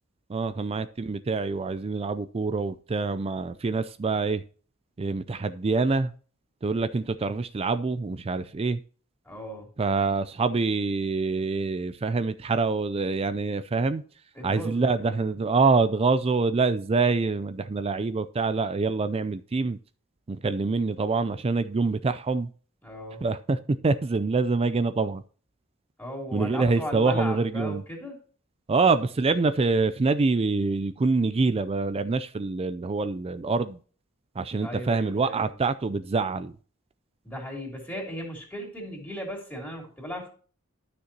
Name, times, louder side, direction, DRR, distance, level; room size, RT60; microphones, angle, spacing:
voice 1, 0.3-4.4 5.0-6.1 6.6-8.8 9.8-14.0 14.4-19.8 20.3-22.5 23.2-25.2 26.3-27.8 28.7-33.8 34.4-36.5, right 4 dB, 25° right, 0.4 m, -25 dB
voice 2, 9.2-9.7 14.3-15.3 22.8-23.2 26.0-28.2 34.6-35.5 37.2-40.3, equal, 10° left, 3.2 m, -37 dB
12.0 x 6.5 x 2.9 m
head